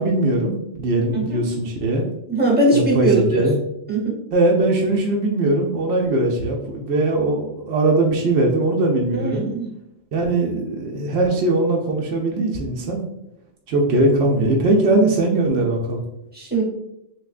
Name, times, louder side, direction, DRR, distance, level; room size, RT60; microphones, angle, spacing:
voice 1, 0.0-2.1 2.7-3.6 4.3-9.5 10.1-13.0 13.7-16.0, right 2 dB, 70° right, 0 dB, 0.8 m, -20 dB
voice 2, 2.3-3.5 3.9-4.2 9.1-9.7 16.3-16.6, right 2 dB, 10° right, -4 dB, 0.9 m, -20 dB
3.3 x 3.1 x 2.4 m, 0.84 s
omnidirectional pair, 1.2 m